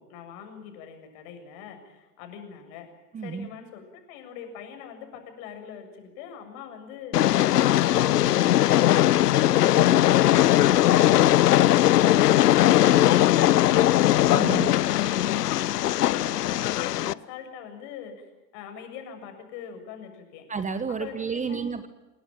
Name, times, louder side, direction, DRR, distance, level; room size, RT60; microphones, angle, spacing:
voice 1, 0.0-2.9 3.2-9.9 10.1-12.0 12.3-13.9 14.5-18.1 18.5-20.4 21.0-21.7, left 8 dB, 50° left, 6 dB, 7.1 m, -42 dB
voice 2, 3.1-3.5 14.3-14.7 20.5-21.9, right 5 dB, 15° right, 12 dB, 1.3 m, -31 dB
Train, 7.1-17.1, left 13 dB, 70° left, 0.8 m, -19 dB
28.0 x 19.5 x 8.9 m, 1.1 s
figure-of-eight pair, 90°, 50 cm